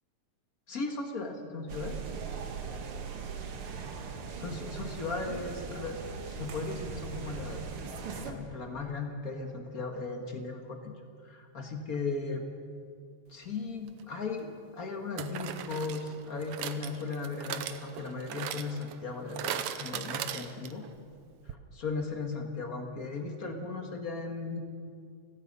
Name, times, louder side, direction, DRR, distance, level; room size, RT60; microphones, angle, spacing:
voice 1, 0.7-2.0 4.4-6.0 6.2-7.6 8.2-10.9 11.2-12.4 13.3-20.8 21.5-24.6, left 3 dB, 40° left, 3 dB, 1.4 m, -37 dB
sound 1, 1.7-8.3, right 5 dB, 50° right, 1.9 m, -39 dB
sound 2, 13.9-14.0 15.2-20.9 21.2-21.3 21.5-21.6, right 10 dB, 70° right, 1.9 m, -39 dB
29.5 x 17.0 x 5.5 m, 2.3 s
omnidirectional pair, 4.0 m